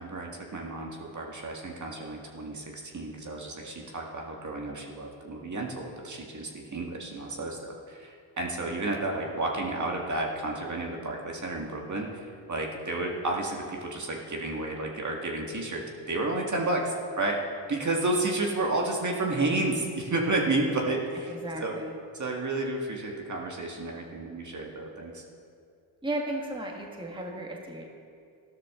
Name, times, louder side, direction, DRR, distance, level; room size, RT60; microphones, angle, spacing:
voice 1, 0.0-17.4 17.7-21.8 22.1-25.2, right 2 dB, 35° right, 0 dB, 2.0 m, -31 dB
voice 2, 21.3-22.0 26.0-27.9, right 1 dB, 10° right, -1 dB, 1.8 m, -35 dB
13.5 x 12.5 x 3.8 m, 2.3 s
supercardioid pair, 70°, 50 cm